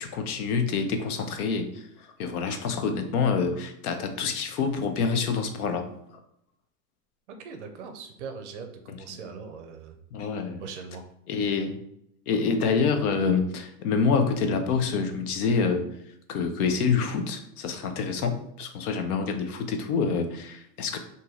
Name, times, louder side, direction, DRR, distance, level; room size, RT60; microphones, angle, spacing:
voice 1, 0.0-5.9 10.1-10.6 11.3-11.8 12.3-15.8 16.3-21.0, left 5 dB, 75° left, 6 dB, 0.7 m, -27 dB
voice 2, 7.3-10.0 10.6-11.0, right 5 dB, 50° right, 6 dB, 0.5 m, -40 dB
2.9 x 2.7 x 3.7 m, 0.73 s
supercardioid pair, 180°, 45 cm